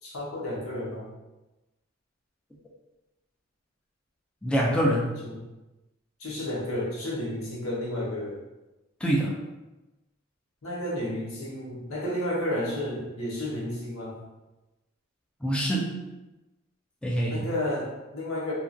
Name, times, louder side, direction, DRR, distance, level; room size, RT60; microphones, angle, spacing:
voice 1, 0.0-1.0 5.2-5.4 6.2-8.4 10.6-14.2 17.3-18.5, left 1 dB, 85° left, -4 dB, 0.9 m, -32 dB
voice 2, 4.4-5.1 9.0-9.4 15.4-16.0 17.0-17.5, right 1 dB, 5° left, -4 dB, 0.3 m, -25 dB
2.8 x 2.4 x 2.5 m, 1.1 s
head